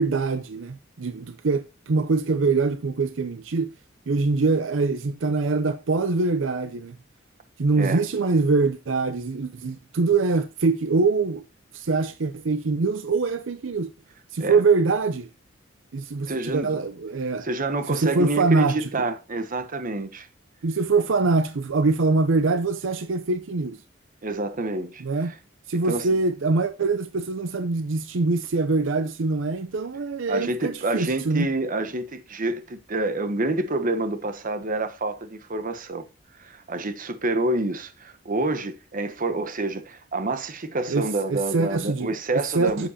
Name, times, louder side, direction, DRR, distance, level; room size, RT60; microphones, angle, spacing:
voice 1, 0.0-3.7 4.1-7.0 7.6-11.4 11.7-13.9 14.3-15.3 15.9-17.5 17.9-18.9 20.6-23.8 25.0-25.3 25.7-31.5 40.9-42.9, right 3 dB, 70° right, 0.6 m, -24 dB
voice 2, 16.3-16.8 17.4-20.3 24.2-25.3 25.7-26.1 30.3-36.0 36.4-42.9, right 2 dB, 45° right, 1.1 m, -28 dB
9.9 x 7.8 x 2.8 m
head